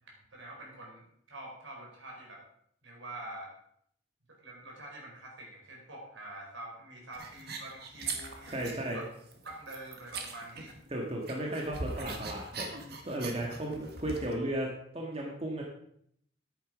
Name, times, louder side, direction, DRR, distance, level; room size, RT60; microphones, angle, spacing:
voice 1, 0.0-2.4 2.8-3.5 4.4-9.1 9.4-10.8 13.5-13.7, right 1 dB, 75° right, -2 dB, 4.7 m, -46 dB
sound 1, 7.1-8.9 9.3-11.0 11.2-14.4, right 3 dB, 50° right, 1.6 m, -41 dB
voice 2, 8.5-9.0 10.9-12.7 13.0-15.6, right 1 dB, 30° right, -1 dB, 1.6 m, -35 dB
10.0 x 8.9 x 5.1 m, 0.69 s
head